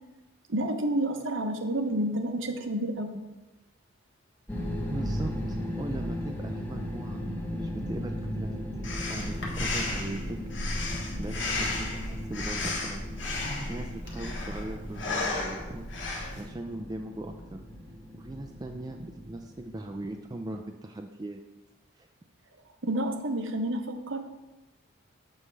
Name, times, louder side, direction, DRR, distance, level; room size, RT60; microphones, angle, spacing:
voice 1, 0.5-3.2 22.8-24.2, right 1 dB, 65° right, 6 dB, 0.8 m, -29 dB
sound 1, 4.5-20.4, equal, 10° left, 0.9 m, -37 dB
voice 2, 4.7-7.2 7.5-10.4 11.2-15.9 16.3-17.6 18.1-21.4 22.0-22.1, right 1 dB, 20° right, 4 dB, 0.3 m, -39 dB
Breathing, 8.8-16.4, left 2 dB, 60° left, 1.4 m, -33 dB
7.3 x 6.3 x 3.3 m, 1.1 s
head